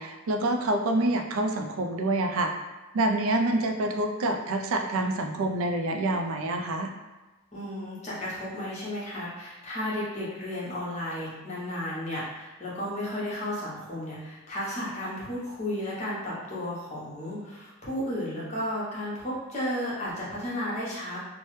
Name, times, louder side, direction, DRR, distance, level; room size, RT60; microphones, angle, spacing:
voice 1, 0.0-2.5 2.9-6.9, right 2 dB, 70° right, 4 dB, 0.4 m, -27 dB
voice 2, 7.5-21.2, left 1 dB, 30° left, -8 dB, 0.9 m, -33 dB
3.0 x 2.0 x 3.1 m, 1.1 s
head